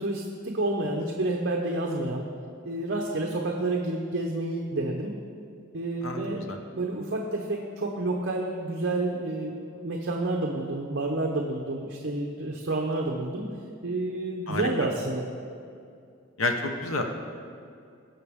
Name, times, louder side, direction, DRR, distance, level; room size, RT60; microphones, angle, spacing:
voice 1, 0.0-2.3 2.6-5.2 5.7-6.4 6.8-13.5 13.8-15.3, right 2 dB, 55° right, 0 dB, 0.8 m, -29 dB
voice 2, 6.0-6.6 14.5-14.7 16.4-17.0, left 2 dB, 80° left, 4 dB, 1.1 m, -29 dB
17.0 x 6.1 x 3.6 m, 2.4 s
head